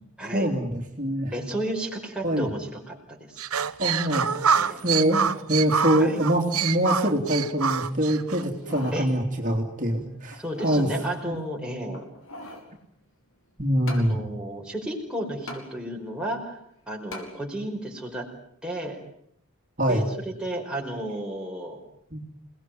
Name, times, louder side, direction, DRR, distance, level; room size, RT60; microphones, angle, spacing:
voice 1, 0.3-1.3 2.2-2.5 3.8-4.5 4.8-10.9 11.2-11.4 13.6-14.2 19.8-20.0 22.1-22.2, equal, 35° right, 1 dB, 3.2 m, -24 dB
voice 2, 1.3-3.4 4.5-4.8 6.0-6.2 8.9-9.1 10.4-12.0 14.0-16.6 16.9-18.3 18.6-19.0 19.9-20.0 20.4-21.8, right 1 dB, 5° right, -1 dB, 5.1 m, -33 dB
sound 1, 3.4-8.4, right 7 dB, 80° right, 1.2 m, -26 dB
sound 2, 8.4-9.0 9.5-9.6 10.3-10.9 11.9-12.7 13.9-14.1 15.5-15.6 17.1-17.3 17.9-18.0, left 1 dB, 60° left, 5.4 m, -40 dB
29.0 x 19.0 x 9.4 m, 0.72 s
head